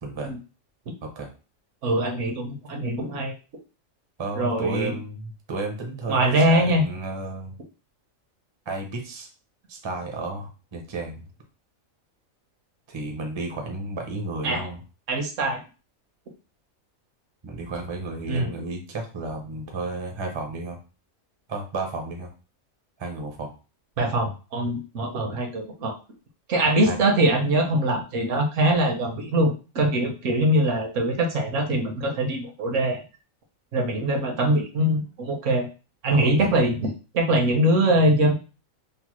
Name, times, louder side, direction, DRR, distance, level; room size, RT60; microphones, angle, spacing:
voice 1, 0.0-0.3 1.0-1.3 4.2-6.2 6.5-7.5 8.7-9.3 9.7-11.3 12.9-14.8 17.4-20.8 21.5-22.3 23.0-23.5 26.6-27.0 36.1-36.6, right 2 dB, 35° right, 2 dB, 0.4 m, -32 dB
voice 2, 1.8-3.3 4.4-4.9 6.1-6.8 14.4-14.7 15.1-15.6 18.3-18.5 24.0-25.9 26.5-33.0 33.7-35.7 36.0-38.3, right 1 dB, 70° right, 3 dB, 1.0 m, -23 dB
3.1 x 2.1 x 2.9 m, 0.33 s
omnidirectional pair, 1.4 m